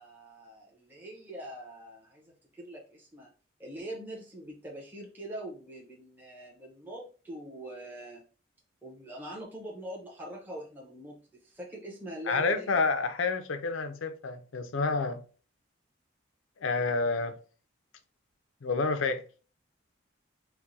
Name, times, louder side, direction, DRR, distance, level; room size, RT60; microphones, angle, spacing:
voice 1, 0.0-3.3 3.6-8.2 8.8-12.8, right 1 dB, 10° right, 0.9 m, -43 dB
voice 2, 12.3-15.2 16.6-17.3 18.6-19.2, left 4 dB, 75° left, 0.5 m, -29 dB
4.5 x 2.2 x 2.6 m
head